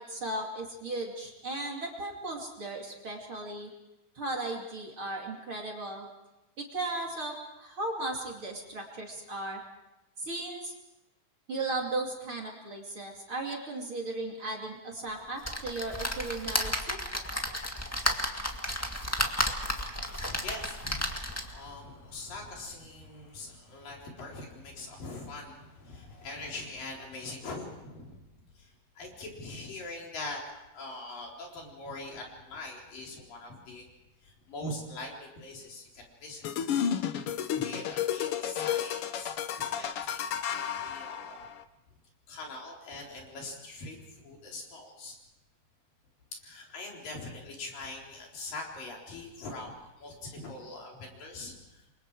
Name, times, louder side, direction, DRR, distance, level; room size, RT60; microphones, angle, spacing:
voice 1, 0.0-3.7 4.1-6.1 6.6-9.6 10.2-10.7 11.5-17.0, right 2 dB, 40° right, 0 dB, 3.2 m, -36 dB
sound 1, 15.4-21.7 22.2-22.3 22.6-22.7, equal, 10° left, 0.6 m, -32 dB
voice 2, 19.7-28.2 28.6-28.7 29.0-33.8 34.2-36.4 37.5-41.4 42.3-45.2 46.4-51.8, left 2 dB, 70° left, -1 dB, 5.7 m, -43 dB
sound 2, 36.4-41.6, left 9 dB, 90° left, 1.2 m, -32 dB
29.0 x 24.5 x 4.8 m, 0.95 s
omnidirectional pair, 4.1 m